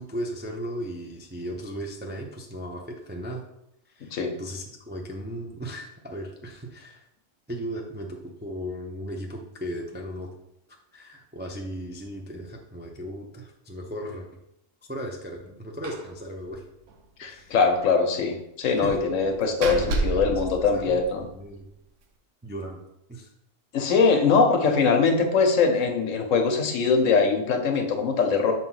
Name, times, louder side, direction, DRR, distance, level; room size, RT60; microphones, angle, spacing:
voice 1, 0.0-3.4 3.9-7.0 7.5-10.3 10.9-14.3 14.9-16.6 17.2-17.6 18.8-18.9 19.8-20.4 20.7-21.7 22.4-23.3, equal, 15° right, 0 dB, 0.3 m, -36 dB
Slam, 15.8-16.2 16.4-16.5 16.9-17.0 18.8-21.4, right 3 dB, 70° right, 1.0 m, -31 dB
voice 2, 17.2-21.2 23.7-28.5, left 5 dB, 75° left, 4 dB, 1.2 m, -22 dB
6.2 x 2.8 x 5.6 m, 0.82 s
omnidirectional pair, 1.4 m